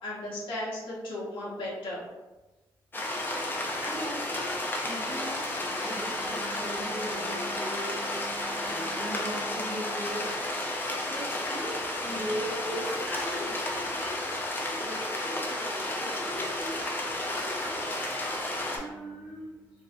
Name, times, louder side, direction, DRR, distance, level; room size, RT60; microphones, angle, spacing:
voice 1, 0.0-2.0, left 1 dB, 75° left, -6 dB, 0.9 m, -35 dB
sound 1, 2.9-18.8, left 1 dB, 25° left, 0.5 m, -32 dB
voice 2, 3.8-10.5 11.0-14.2 14.5-19.8, equal, 10° right, -5 dB, 1.0 m, -39 dB
2.6 x 2.0 x 2.5 m, 1.1 s
cardioid pair, 85°, 9 cm